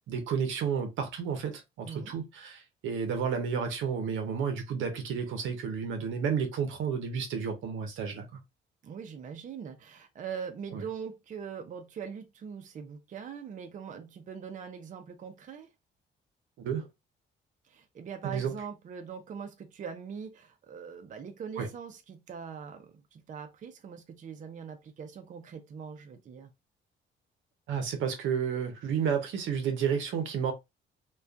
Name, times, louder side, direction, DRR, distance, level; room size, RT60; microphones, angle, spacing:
voice 1, 0.1-8.3 10.7-10.8 16.6-16.9 18.2-18.5 21.6-21.7 27.7-30.5, right 6 dB, 80° right, 0.7 m, -31 dB
voice 2, 1.8-2.2 8.8-15.7 17.7-26.5, right 7 dB, 40° right, 0.5 m, -42 dB
2.4 x 2.2 x 2.3 m
cardioid pair, 90°, 20 cm